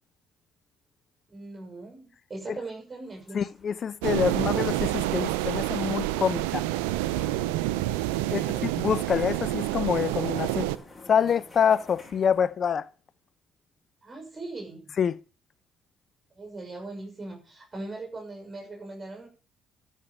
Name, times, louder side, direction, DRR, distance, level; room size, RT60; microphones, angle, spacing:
voice 1, 1.3-3.4 8.3-8.8 14.0-14.8 16.3-19.3, right 2 dB, 30° right, 6.3 m, -40 dB
sound 1, 3.0-12.5, left 2 dB, 20° left, 5.4 m, -52 dB
voice 2, 3.3-6.7 8.3-10.7 11.1-12.9 15.0-15.2, left 7 dB, 50° left, 0.8 m, -26 dB
sound 2, 4.0-10.8, right 15 dB, 85° right, 0.7 m, -28 dB
13.5 x 6.6 x 7.0 m
hypercardioid pair, 60°, 0 cm